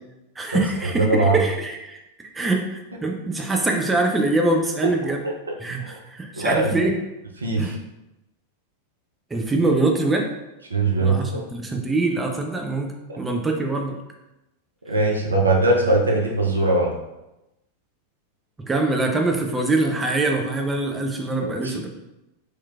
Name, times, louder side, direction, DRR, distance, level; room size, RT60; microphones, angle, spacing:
voice 1, 0.4-2.0 2.3-5.2 5.6-7.0 7.6-7.8 9.3-10.3 11.0-14.0 18.6-21.9, right 2 dB, 10° right, 2 dB, 0.4 m, -24 dB
voice 2, 1.0-1.4 4.8-4.9 5.2-5.3 5.8-6.0 6.3-6.7 7.4-7.7 10.7-11.4 14.9-16.9 21.4-21.8, right 2 dB, 75° right, 0 dB, 0.5 m, -21 dB
3.3 x 3.0 x 2.3 m, 0.95 s
figure-of-eight pair, 90°, 0 cm